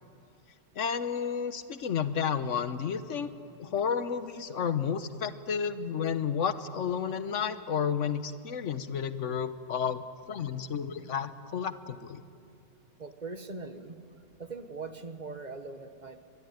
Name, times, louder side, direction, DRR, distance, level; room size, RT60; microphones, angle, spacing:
voice 1, 0.8-3.3 3.6-12.2, left 7 dB, 70° left, 12 dB, 1.3 m, -31 dB
voice 2, 13.0-14.0 14.4-16.2, right 3 dB, 35° right, 9 dB, 1.3 m, -41 dB
23.0 x 22.0 x 9.3 m, 2.4 s
omnidirectional pair, 1.3 m